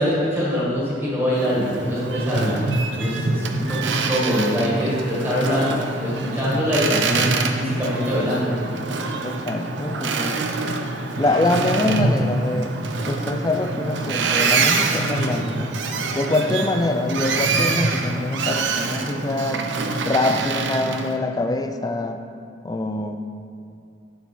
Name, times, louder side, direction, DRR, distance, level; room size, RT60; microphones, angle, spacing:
voice 1, 0.0-2.6 2.9-8.6, equal, 15° right, -7 dB, 1.8 m, -23 dB
Boat Water vehicle, 1.3-21.1, right 3 dB, 85° right, 0.6 m, -25 dB
voice 2, 9.2-10.4 11.2-12.7 13.1-15.7 16.1-19.6 20.0-22.3 22.6-23.2, left 2 dB, 20° left, 7 dB, 0.4 m, -24 dB
11.0 x 4.2 x 4.4 m, 2.4 s
head